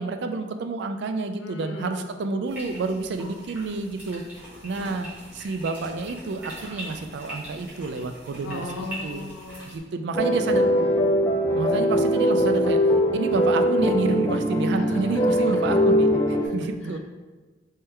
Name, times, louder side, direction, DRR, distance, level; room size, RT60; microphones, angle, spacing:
voice 1, 0.0-4.2 4.6-5.1 5.3-9.3 9.6-10.7 11.5-12.8 13.1-17.0, right 3 dB, 60° right, 7 dB, 0.4 m, -29 dB
voice 2, 1.4-2.0 4.7-5.1 8.4-9.7 10.3-11.1 14.7-15.8 16.4-16.5 16.8-17.0, left 2 dB, 75° left, 2 dB, 0.6 m, -38 dB
sound 1, 2.5-9.8, right 1 dB, 10° right, 1.3 m, -41 dB
sound 2, 10.1-16.5, equal, 15° left, 0.4 m, -21 dB
3.7 x 3.3 x 4.3 m, 1.3 s
head